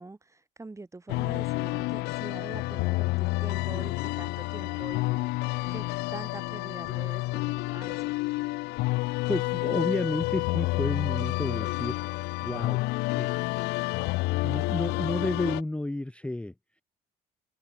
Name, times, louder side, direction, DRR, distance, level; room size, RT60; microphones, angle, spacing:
voice 1, 0.0-5.9 6.1-8.1, right 3 dB, 15° right, 1.9 m, -44 dB
sound 1, 1.1-15.6, left 22 dB, 75° left, 0.5 m, -29 dB
voice 2, 9.0-16.8, left 1 dB, 5° left, 0.8 m, -33 dB
open air
supercardioid pair, 70°, 17 cm